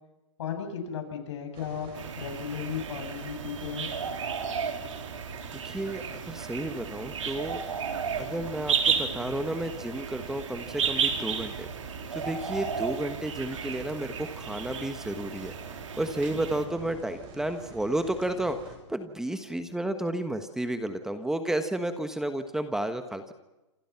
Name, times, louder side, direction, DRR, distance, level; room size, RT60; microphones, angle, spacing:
voice 1, 0.4-1.9 2.2-3.9, left 7 dB, 70° left, 6 dB, 7.4 m, -35 dB
sound 1, 1.5-18.8, right 4 dB, 30° right, 8.0 m, -47 dB
sound 2, 1.9-16.6, right 6 dB, 90° right, 4.1 m, -33 dB
voice 2, 5.5-7.6 8.1-11.7 12.1-15.5 16.0-23.3, right 1 dB, 5° right, 8 dB, 1.3 m, -32 dB
28.0 x 27.0 x 5.9 m, 1.0 s
hypercardioid pair, 150°, 16 cm